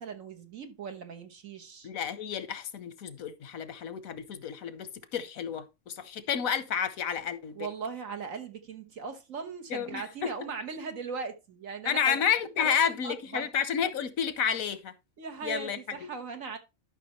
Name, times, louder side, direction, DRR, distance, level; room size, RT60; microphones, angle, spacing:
voice 1, 0.0-1.9 7.5-12.2 12.5-13.5 15.2-16.6, right 5 dB, 75° right, 1.7 m, -39 dB
voice 2, 1.8-7.7 9.7-10.3 11.8-14.9 15.4-16.1, left 8 dB, 85° left, 1.3 m, -31 dB
12.0 x 5.8 x 3.0 m
omnidirectional pair, 1.4 m